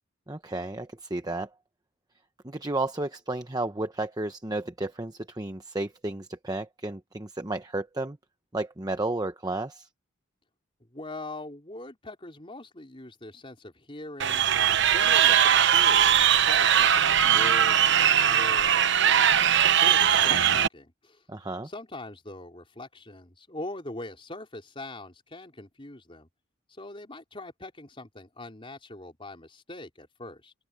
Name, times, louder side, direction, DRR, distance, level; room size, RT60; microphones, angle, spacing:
voice 1, 0.3-1.5 2.4-8.2 8.5-9.9 21.3-21.7, right 2 dB, 20° right, 0.9 m, -32 dB
voice 2, 10.8-17.8 18.1-21.2 21.6-26.3 26.7-30.5, left 2 dB, 25° left, 4.3 m, -42 dB
Crowd, 14.2-20.7, right 9 dB, 60° right, 1.0 m, -20 dB
open air
head